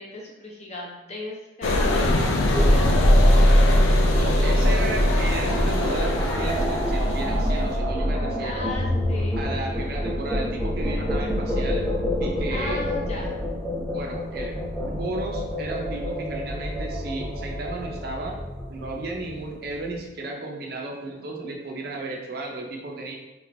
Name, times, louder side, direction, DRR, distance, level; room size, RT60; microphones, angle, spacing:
voice 1, 0.0-3.5 8.4-9.5 12.5-13.3, left 1 dB, 35° left, -3 dB, 0.6 m, -37 dB
sound 1, 1.6-7.8, left 2 dB, 80° left, 0.4 m, -25 dB
sound 2, 2.5-19.8, equal, 5° right, 0.9 m, -24 dB
voice 2, 4.1-8.7 9.4-11.8 12.2-12.8 13.9-14.6 14.9-18.4 18.7-23.2, right 2 dB, 50° right, 0 dB, 0.5 m, -34 dB
3.2 x 3.0 x 2.6 m, 1.1 s
head